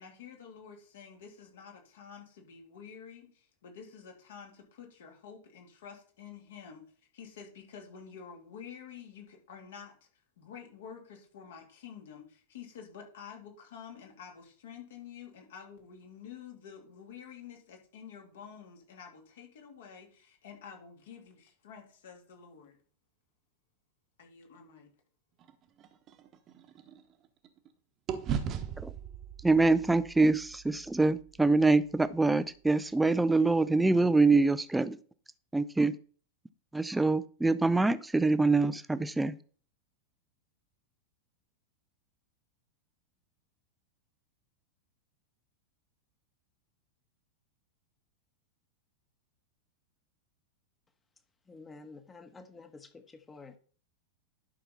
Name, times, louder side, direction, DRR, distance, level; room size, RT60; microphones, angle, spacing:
voice 1, 0.0-6.8 7.1-10.1 10.4-22.8 24.2-24.9, left 7 dB, 60° left, 2 dB, 2.8 m, -49 dB
sound 1, 25.4-27.7 28.1-32.3, right 8 dB, 30° right, 1.1 m, -40 dB
voice 2, 29.4-35.0 35.5-35.9 36.7-39.4, right 3 dB, 5° right, 14 dB, 0.5 m, -25 dB
voice 3, 51.5-53.6, left 3 dB, 15° left, 8 dB, 1.3 m, -50 dB
11.5 x 5.9 x 4.0 m, 0.43 s
figure-of-eight pair, 90°, 0 cm